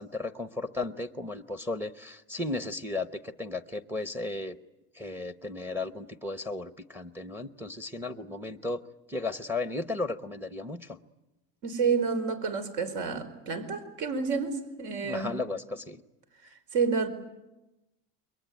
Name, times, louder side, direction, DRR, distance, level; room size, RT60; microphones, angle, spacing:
voice 1, 0.0-4.6 4.9-8.8 9.1-11.0 15.0-16.0, left 2 dB, 5° right, 10 dB, 0.9 m, -35 dB
voice 2, 11.6-15.3 16.7-17.1, right 5 dB, 65° right, 8 dB, 4.6 m, -29 dB
28.5 x 23.0 x 9.2 m, 0.99 s
cardioid pair, 150°, 38 cm